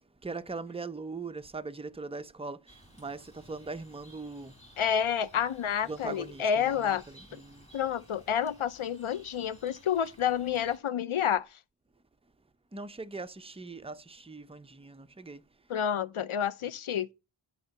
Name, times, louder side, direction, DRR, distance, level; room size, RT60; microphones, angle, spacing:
voice 1, 0.2-4.6 5.8-7.7 12.7-15.4, right 3 dB, 10° right, 0.6 m, -41 dB
sound 1, 2.7-10.8, equal, 15° left, 3.6 m, -57 dB
voice 2, 4.8-7.0 7.7-11.5 15.7-17.1, left 8 dB, 80° left, 0.7 m, -29 dB
11.0 x 3.9 x 5.3 m
wide cardioid pair, 60°, 49 cm